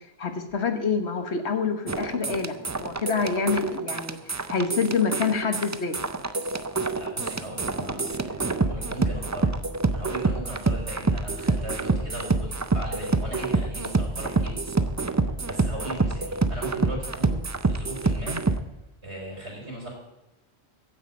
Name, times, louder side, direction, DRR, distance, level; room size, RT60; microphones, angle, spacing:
voice 1, 0.2-4.2 4.5-6.0, left 5 dB, 75° left, 7 dB, 1.6 m, -27 dB
sound 1, 1.9-18.6, right 3 dB, 25° right, 0.4 m, -27 dB
voice 2, 7.0-9.5 9.9-14.6 15.2-18.4 19.0-19.9, right 1 dB, 80° right, -2 dB, 4.9 m, -38 dB
15.0 x 10.0 x 5.3 m, 0.97 s
omnidirectional pair, 1.1 m